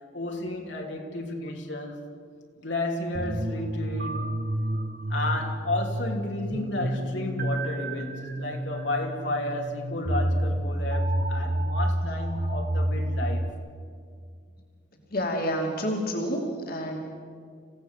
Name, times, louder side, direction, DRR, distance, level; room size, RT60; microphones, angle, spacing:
voice 1, 0.1-2.0 2.6-4.3 5.1-13.5, left 2 dB, 80° left, 1 dB, 3.2 m, -32 dB
sound 1, 3.1-13.5, right 1 dB, 50° right, 1.5 m, -29 dB
voice 2, 15.1-17.0, equal, 55° left, 1 dB, 2.7 m, -29 dB
27.0 x 16.5 x 8.3 m, 2.1 s
head